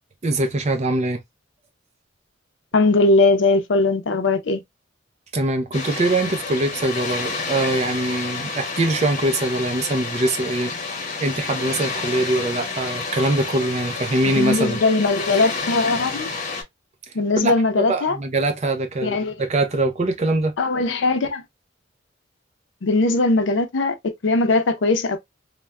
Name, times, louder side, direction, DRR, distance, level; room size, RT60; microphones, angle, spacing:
voice 1, 0.2-1.2 5.3-10.7 11.2-14.8 17.4-20.5, right 2 dB, 35° right, 0.5 m, -23 dB
voice 2, 2.7-4.6 14.3-16.3 17.1-18.2 19.0-19.3 20.6-21.4 22.8-24.0 24.2-25.2, left 3 dB, 70° left, 0.6 m, -19 dB
Water, 5.7-16.6, left 4 dB, 40° left, 0.8 m, -30 dB
3.2 x 2.2 x 2.2 m
head